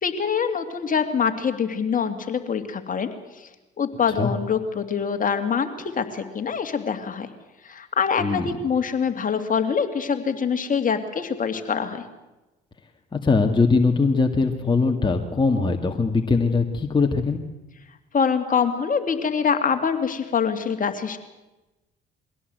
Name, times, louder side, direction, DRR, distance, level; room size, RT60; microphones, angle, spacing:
voice 1, 0.0-3.5 3.8-7.3 7.6-12.0 18.1-21.2, left 6 dB, 40° left, 6 dB, 2.6 m, -24 dB
voice 2, 8.2-8.5 13.1-17.4, left 4 dB, 20° left, 3 dB, 2.1 m, -21 dB
23.0 x 17.0 x 8.0 m, 1.0 s
supercardioid pair, 75°, 21 cm